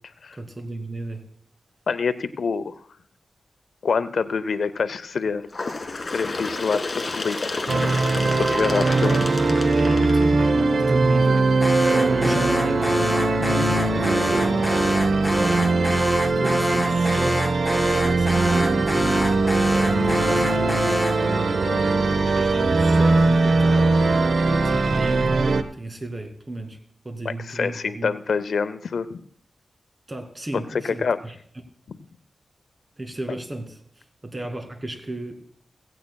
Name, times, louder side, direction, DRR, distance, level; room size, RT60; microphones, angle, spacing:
voice 1, 0.4-1.2 8.8-8.9 9.5-11.5 12.2-12.9 13.4-14.8 16.4-19.4 20.0-21.3 21.7-21.8 22.1-23.9 24.5-26.8 27.0-28.1 30.1-31.4 33.0-35.4, right 1 dB, 25° right, 4 dB, 2.3 m, -33 dB
voice 2, 1.9-2.8 3.8-5.5 6.1-7.6 8.4-9.2 21.7-22.0 27.2-29.2 30.8-31.2, left 5 dB, 85° left, 14 dB, 0.5 m, -26 dB
Bird, 5.5-10.9 11.8-11.9 12.3-12.4 13.3-13.4 14.3-14.4 15.3-15.4, left 3 dB, 45° left, 1.7 m, -31 dB
sound 1, 7.7-25.6, right 3 dB, 65° right, 0.8 m, -20 dB
Alarm, 11.6-21.3, left 1 dB, 15° left, 0.4 m, -27 dB
16.5 x 16.5 x 2.3 m, 0.63 s
wide cardioid pair, 95°, 0 cm